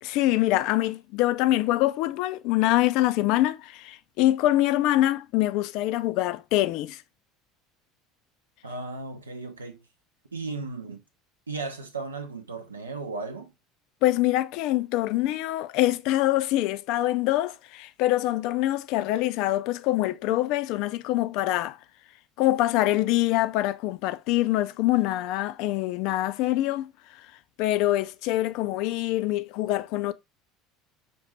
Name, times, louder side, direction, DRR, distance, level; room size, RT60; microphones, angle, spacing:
voice 1, 0.0-7.0 14.0-21.8 22.4-27.2 27.6-30.1, left 15 dB, 60° left, 0.3 m, -24 dB
voice 2, 8.6-9.8 10.3-11.0 11.5-13.5, right 3 dB, 85° right, 0.6 m, -35 dB
5.9 x 2.5 x 3.0 m
figure-of-eight pair, 70°, 0 cm